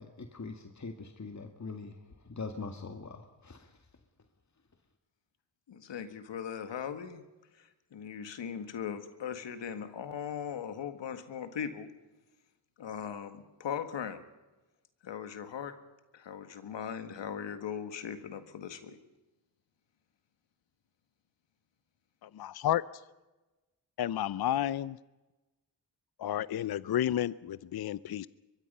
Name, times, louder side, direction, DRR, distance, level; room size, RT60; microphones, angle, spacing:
voice 1, 0.0-3.7, left 4 dB, 40° left, 5 dB, 2.1 m, -43 dB
voice 2, 5.7-7.2 7.6-11.9 12.8-14.2 15.0-15.7 16.1-19.0, left 8 dB, 85° left, 9 dB, 1.8 m, -39 dB
voice 3, 22.2-22.8 24.0-25.0 26.2-28.3, left 11 dB, 60° left, 19 dB, 0.6 m, -31 dB
23.0 x 22.0 x 5.6 m, 1.1 s
cardioid pair, 50°, 43 cm